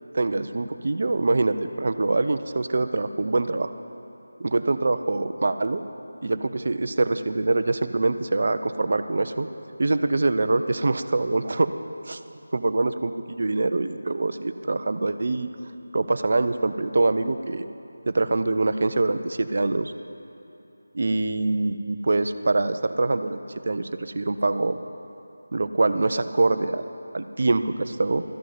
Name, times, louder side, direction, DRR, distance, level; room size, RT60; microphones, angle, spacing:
voice 1, 0.1-3.7 4.4-5.8 6.2-9.5 9.8-11.7 12.1-12.2 12.5-15.5 15.9-17.7 18.1-19.9 20.9-23.4 23.7-24.8 25.5-26.9 27.1-28.2, right 2 dB, 55° right, 10 dB, 0.5 m, -24 dB
13.0 x 6.2 x 9.2 m, 2.9 s
figure-of-eight pair, 165°, 0 cm